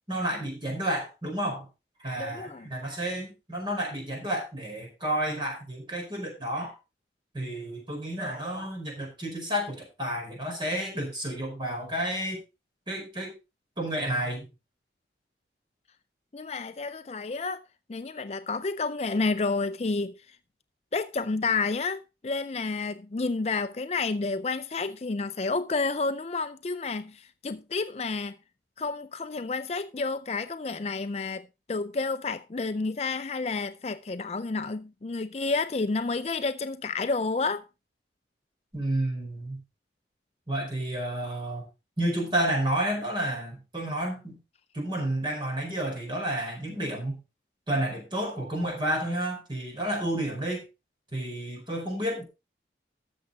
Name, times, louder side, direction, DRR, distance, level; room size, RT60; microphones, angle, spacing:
voice 1, 0.1-1.7 2.0-6.7 7.3-12.4 12.9-13.3 13.8-14.4 38.7-39.6 40.5-41.6 42.0-44.4 44.7-47.2 47.7-50.6 51.1-52.2, right 1 dB, 25° right, 4.9 m, -31 dB
voice 2, 2.2-2.7 16.3-17.6 17.9-20.2 20.9-28.4 28.8-37.6, left 3 dB, 35° left, 0.4 m, -30 dB
13.5 x 7.3 x 4.0 m
head